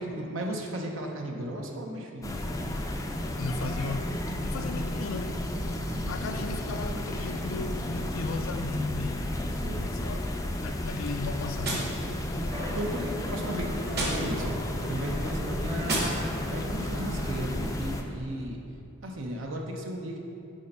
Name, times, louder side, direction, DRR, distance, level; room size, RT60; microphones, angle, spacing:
voice 1, 0.0-2.4 5.9-6.3 9.6-9.9 12.7-16.1 16.5-18.6 19.0-20.2, right 1 dB, 70° right, 0.7 m, -35 dB
sound 1, 2.2-18.0, left 1 dB, 15° left, 0.4 m, -32 dB
voice 2, 3.4-5.5 6.1-9.4 9.8-11.9, left 3 dB, 75° left, 0.4 m, -35 dB
Gunshot gunfire, 11.6-12.7 13.9-14.7 15.8-16.7, right 1 dB, 50° right, 1.3 m, -34 dB
sound 2, 12.5-17.5, equal, 35° right, 1.0 m, -40 dB
6.4 x 4.3 x 5.4 m
head